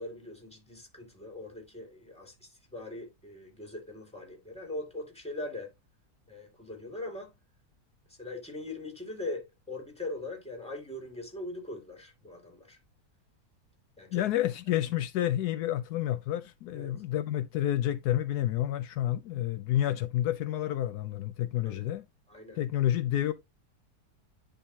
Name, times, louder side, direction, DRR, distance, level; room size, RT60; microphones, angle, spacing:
voice 1, 0.0-5.7 6.3-7.3 8.2-12.8 14.0-14.2 16.7-16.9 21.6-21.9 22.3-22.6, left 2 dB, 5° left, 2.4 m, -41 dB
voice 2, 14.1-22.0 22.6-23.3, left 12 dB, 80° left, 1.1 m, -29 dB
10.0 x 3.9 x 2.8 m
omnidirectional pair, 1.7 m